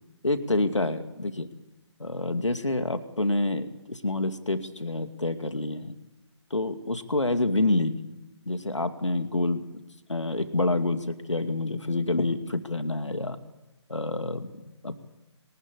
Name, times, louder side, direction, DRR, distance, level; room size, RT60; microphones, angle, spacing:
voice 1, 0.2-1.5 2.0-5.9 6.5-7.9 8.5-9.8 10.1-13.4 13.9-15.0, left 2 dB, 80° left, 9 dB, 2.4 m, -27 dB
23.5 x 19.5 x 8.6 m, 1.0 s
figure-of-eight pair, 145°, 15 cm